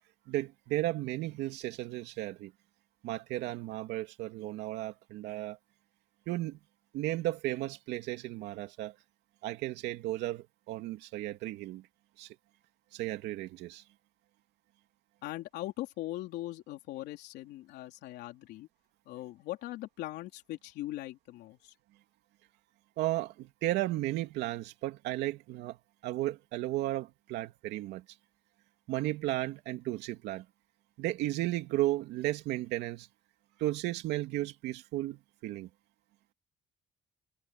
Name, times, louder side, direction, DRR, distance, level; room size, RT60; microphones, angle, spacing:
voice 1, 0.3-2.5 3.0-5.6 6.3-6.6 6.9-8.9 9.4-11.9 12.2-12.4 12.9-13.8 23.0-25.8 26.0-28.0 28.9-30.5 31.0-33.1 33.6-35.7, right 16 dB, 85° right, 2.8 m, -34 dB
voice 2, 15.2-18.7 19.1-21.7, left 16 dB, 85° left, 3.5 m, -40 dB
cardioid pair, 110°, 17 cm